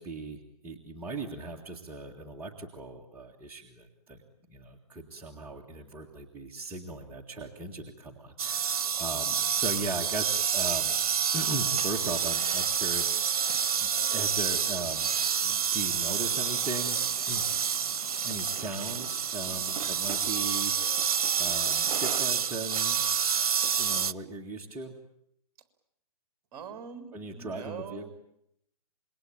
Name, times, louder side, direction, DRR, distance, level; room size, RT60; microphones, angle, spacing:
voice 1, 0.0-4.2 4.5-11.0 11.3-15.1 15.7-17.5 18.2-21.1 21.4-23.0 23.8-25.0 27.1-28.1, right 2 dB, 10° right, -3 dB, 2.0 m, -38 dB
sound 1, 8.4-24.1, right 7 dB, 65° right, 1.0 m, -28 dB
voice 2, 19.5-19.9 26.5-28.1, right 7 dB, 30° right, 8 dB, 3.8 m, -43 dB
27.5 x 23.0 x 8.8 m, 0.74 s
hypercardioid pair, 150°, 19 cm